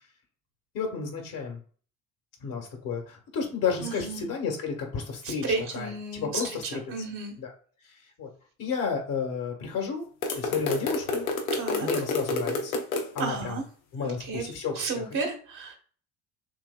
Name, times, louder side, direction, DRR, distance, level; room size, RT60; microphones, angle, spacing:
voice 1, 0.7-1.6 2.4-5.4 5.7-6.8 7.4-7.5 7.9-8.3 8.6-10.0 10.3-11.3 11.8-12.8 13.1-13.6 13.9-15.3, left 5 dB, 50° left, 2 dB, 1.6 m, -32 dB
voice 2, 3.8-4.2 5.2-7.4 11.5-11.9 13.2-13.6 14.0-14.5 14.8-15.7, right 4 dB, 50° right, 0 dB, 1.8 m, -33 dB
sound 1, 10.2-13.2, left 3 dB, 75° left, 0.9 m, -29 dB
6.4 x 2.6 x 2.3 m, 0.42 s
figure-of-eight pair, 60°, 41 cm